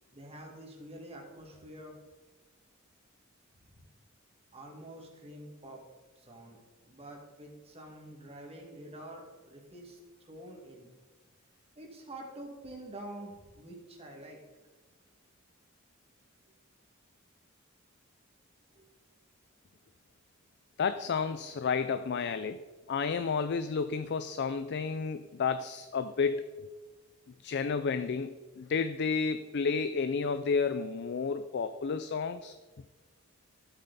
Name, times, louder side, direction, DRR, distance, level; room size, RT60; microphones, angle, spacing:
voice 1, 0.1-1.9 3.7-3.8 4.5-5.8 6.2-6.6 6.9-10.0 10.2-10.9 11.8-14.4 18.7-18.9, right 1 dB, 30° right, 0 dB, 2.2 m, -47 dB
voice 2, 20.8-22.6 22.9-26.5 27.4-32.5, left 5 dB, 55° left, 11 dB, 0.4 m, -31 dB
13.5 x 8.1 x 4.1 m, 1.3 s
head